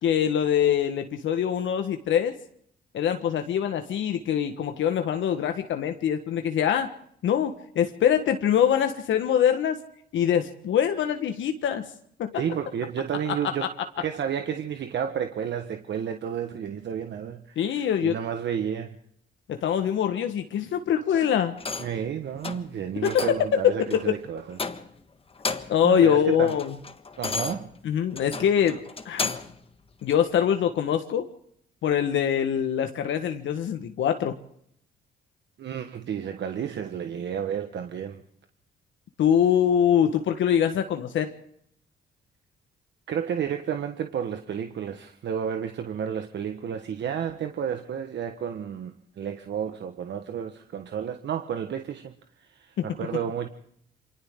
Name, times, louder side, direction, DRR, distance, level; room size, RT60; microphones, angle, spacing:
voice 1, 0.0-2.3 2.9-6.9 7.2-9.8 10.1-11.9 12.2-12.3 17.6-18.2 19.5-21.6 23.0-23.2 23.9-24.2 25.7-26.7 27.8-28.8 29.0-29.3 30.0-31.3 31.8-34.3 39.2-41.3 52.8-52.9, left 9 dB, 70° left, 1.4 m, -24 dB
voice 2, 12.3-13.7 14.0-19.0 21.8-24.6 25.8-26.5 27.2-27.7 35.6-38.2 43.1-52.1 52.4-53.5, right 8 dB, 60° right, 1.4 m, -31 dB
sound 1, 21.6-22.0 22.4-22.7 23.0-23.5 23.9-24.1 24.5-25.0 25.3-25.9 26.2-29.6 30.1-30.2, left 4 dB, 30° left, 1.5 m, -33 dB
28.5 x 25.0 x 3.8 m
cardioid pair, 90°, 20 cm